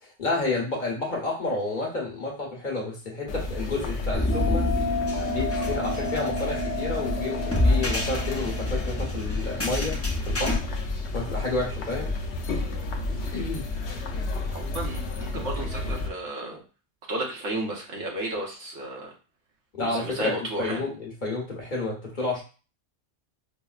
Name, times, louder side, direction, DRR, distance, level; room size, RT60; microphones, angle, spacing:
voice 1, 0.0-4.6 5.3-10.0 10.3-10.6 11.1-12.1 13.3-13.7 19.7-22.4, left 2 dB, 40° left, -2 dB, 1.1 m, -30 dB
sound 1, 3.3-16.1, left 2 dB, 70° left, 0.9 m, -32 dB
sound 2, 4.1-10.6, left 1 dB, 20° left, 0.5 m, -28 dB
Bell, 4.3-9.4, left 1 dB, 35° right, 0.7 m, -31 dB
voice 2, 14.5-16.6 17.1-19.1 19.8-20.8, right 1 dB, 70° right, -1 dB, 1.2 m, -33 dB
5.0 x 2.1 x 2.3 m, 0.35 s
omnidirectional pair, 1.2 m